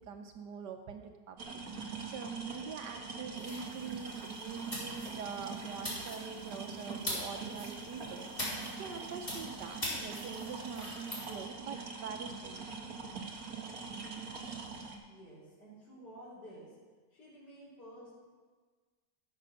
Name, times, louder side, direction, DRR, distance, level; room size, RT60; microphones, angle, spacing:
voice 1, 0.1-12.7, right 6 dB, 75° right, 5 dB, 1.4 m, -44 dB
sound 1, 1.4-15.0, right 4 dB, 55° right, 1.8 m, -43 dB
sound 2, 3.4-11.2, left 1 dB, 25° left, 3.7 m, -43 dB
voice 2, 15.1-16.8 17.1-18.2, equal, 65° left, -10 dB, 4.3 m, -52 dB
15.5 x 6.8 x 6.4 m, 1.4 s
omnidirectional pair, 1.9 m